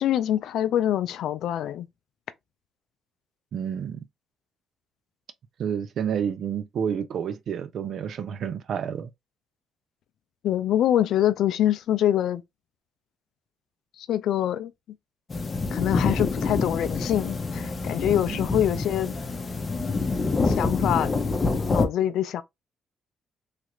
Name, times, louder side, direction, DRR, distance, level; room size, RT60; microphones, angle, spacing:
voice 1, 0.0-1.9 10.4-12.4 14.0-14.7 15.7-19.2 20.4-21.1 21.7-22.4, left 11 dB, 80° left, 0.3 m, -25 dB
voice 2, 3.5-4.0 5.6-9.1 18.3-18.5, right 8 dB, 65° right, 0.4 m, -30 dB
sound 1, 15.3-21.9, left 3 dB, 35° left, 0.6 m, -26 dB
3.2 x 2.4 x 2.9 m
cardioid pair, 90°, 0 cm